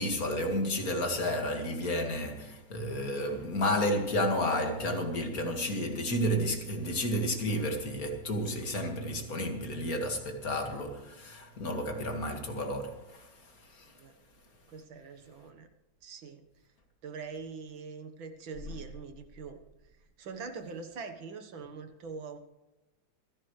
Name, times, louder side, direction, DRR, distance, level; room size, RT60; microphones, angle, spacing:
voice 1, 0.0-13.3 13.7-13.9, left 1 dB, 45° left, 2.5 m, -31 dB
voice 2, 14.7-15.7 16.0-16.5 17.0-19.6 20.2-22.4, right 5 dB, 75° right, 2.2 m, -43 dB
27.0 x 11.0 x 3.3 m
omnidirectional pair, 2.2 m